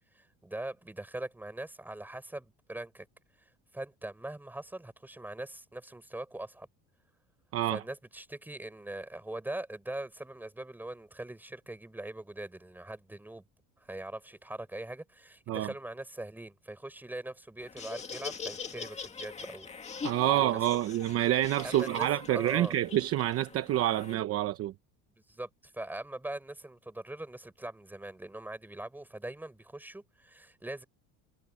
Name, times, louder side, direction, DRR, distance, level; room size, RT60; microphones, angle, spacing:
voice 1, 0.1-3.1 3.7-6.7 7.7-13.4 13.8-19.7 20.2-20.8 21.6-22.7 25.3-30.8, right 1 dB, 5° right, 6.1 m, -42 dB
Laughter, 17.6-24.1, left 5 dB, 20° left, 2.1 m, -42 dB
voice 2, 20.0-24.7, right 13 dB, 40° right, 0.9 m, -28 dB
cardioid pair, 160°, 35 cm